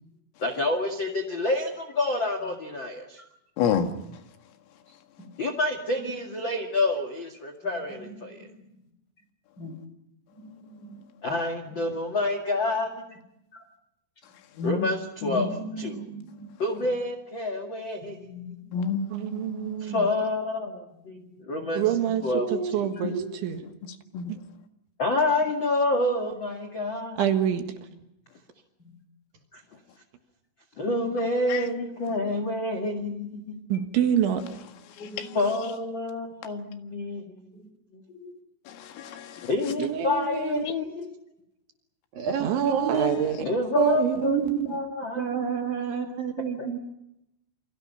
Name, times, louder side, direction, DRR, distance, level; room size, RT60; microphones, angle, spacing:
voice 1, 0.4-3.2 5.4-8.5 11.2-13.0 14.6-15.5 15.8-16.0 16.6-18.3 19.8-21.8 22.2-22.5 22.7-22.9 25.0-27.2 29.5-29.6 30.8-33.6 35.3-37.6 37.9-38.0 39.5-41.1 43.4-45.3 46.6-46.7, left 2 dB, 55° left, 1.3 m, -28 dB
voice 2, 3.6-3.9 14.6-14.9 15.2-15.4 18.7-19.8 24.1-24.3 31.5-31.7 35.0-35.3 38.7-39.5, left 7 dB, 80° left, 4.4 m, -29 dB
voice 3, 4.9-5.3 6.0-6.1 7.6-8.7 9.6-9.8 10.3-11.0 11.7-11.8 13.5-13.6 15.2-16.5 18.1-18.8 21.2-21.7 23.0-23.1 28.8-29.0 30.8-31.0 32.0-32.2 33.4-33.5 35.0-35.4 37.5-37.7 38.1-38.3 40.8-41.1, equal, 20° left, 4.1 m, -41 dB
voice 4, 19.1-20.1 21.7-22.2 22.5-23.2 23.4-23.6 24.3-24.4 27.2-27.7 33.7-34.4 39.8-40.7 42.4-43.4 43.8-44.8, right 9 dB, 70° right, 3.9 m, -26 dB
voice 5, 22.3-22.7 23.0-23.3 42.1-43.1 44.2-44.7 45.1-46.8, right 7 dB, 55° right, 3.3 m, -29 dB
29.0 x 24.5 x 5.7 m
omnidirectional pair, 5.9 m